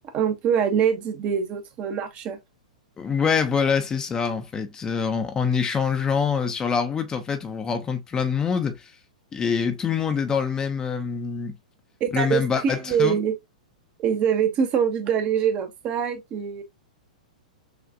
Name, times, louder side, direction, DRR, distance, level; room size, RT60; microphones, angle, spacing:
voice 1, 0.1-2.4 12.0-13.3 14.0-16.6, right 7 dB, 30° right, 0.9 m, -24 dB
voice 2, 3.0-8.9 9.3-11.5 12.1-13.2, left 6 dB, 15° left, 0.7 m, -25 dB
6.6 x 2.5 x 2.5 m
figure-of-eight pair, 105°, 4 cm